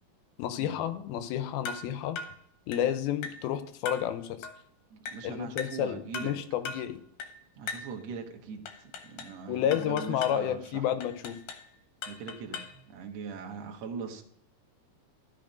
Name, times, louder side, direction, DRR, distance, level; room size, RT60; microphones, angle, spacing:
voice 1, 0.4-2.2 2.7-4.5 5.2-7.0 9.5-11.4, left 10 dB, 85° left, 10 dB, 2.6 m, -31 dB
sound 1, 1.6-1.9 2.2-2.4 2.7-2.9 3.2-3.5 3.9-4.1 4.4-4.6 5.1-5.3 5.6-5.8 6.1-6.4 6.6-6.9 7.2-7.4 7.7-7.9 8.7-9.4 9.7-10.4 11.0-11.7 12.0-12.8, left 4 dB, 65° left, 2.5 m, -39 dB
voice 2, 4.9-6.3 7.6-10.8 12.1-14.2, right 5 dB, 60° right, 2 dB, 2.0 m, -41 dB
13.0 x 5.9 x 5.2 m, 0.67 s
omnidirectional pair, 4.3 m